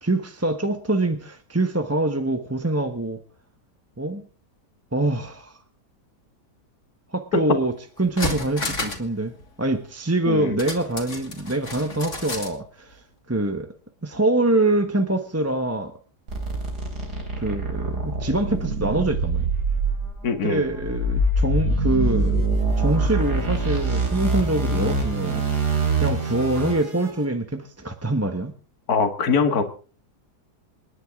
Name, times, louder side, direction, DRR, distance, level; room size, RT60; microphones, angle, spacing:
voice 1, 0.0-3.2 4.0-4.2 4.9-5.6 7.1-7.7 8.0-9.3 9.6-13.0 13.3-13.7 14.0-15.9 17.4-19.5 20.4-22.4 22.8-25.4 25.9-28.5, right 2 dB, 10° right, 7 dB, 1.0 m, -24 dB
sound 1, 7.6-7.7 8.0-9.1 9.4-9.5 10.6-12.6 12.9-13.0, left 2 dB, 45° left, 3.1 m, -31 dB
voice 2, 10.3-10.6 20.2-20.7 28.9-29.6, left 5 dB, 65° left, 7 dB, 2.3 m, -22 dB
sound 2, 16.3-27.1, right 2 dB, 70° right, 4.6 m, -24 dB
28.5 x 10.5 x 3.7 m, 0.39 s
omnidirectional pair, 1.8 m